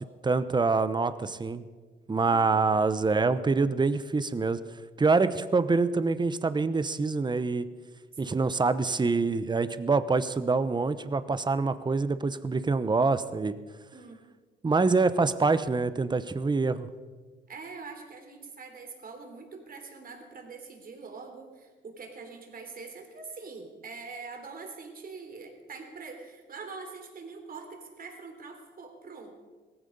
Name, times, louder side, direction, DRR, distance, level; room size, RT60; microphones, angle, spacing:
voice 1, 0.0-1.6 2.1-4.6 5.0-7.7 8.2-13.6 14.6-16.9, right 4 dB, 20° right, 13 dB, 0.9 m, -25 dB
voice 2, 13.9-14.2 17.5-29.3, right 4 dB, 45° right, 4 dB, 3.4 m, -44 dB
18.0 x 15.0 x 5.4 m, 1.4 s
cardioid pair, 90°, 20 cm